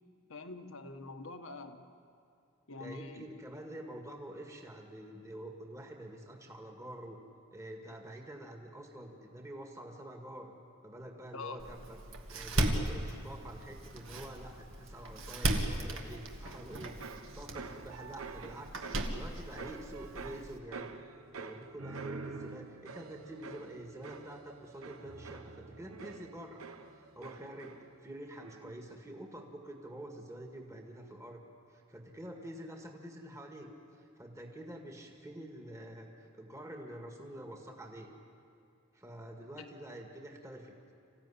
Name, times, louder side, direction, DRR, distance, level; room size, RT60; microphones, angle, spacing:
voice 1, 0.3-1.8 2.7-3.3 11.3-11.6 39.6-39.7, left 3 dB, 70° left, 7 dB, 1.5 m, -45 dB
voice 2, 2.8-7.2 7.5-10.5 10.8-21.0 21.4-26.6 26.9-31.4 31.7-38.1 38.9-40.8, right 1 dB, 15° right, 2 dB, 1.9 m, -47 dB
Door, 11.6-20.6, right 1 dB, 65° right, 2.0 m, -37 dB
sound 1, 16.5-28.1 28.4-28.9, right 4 dB, 85° right, 1.1 m, -47 dB
26.5 x 15.5 x 9.9 m, 2.6 s
head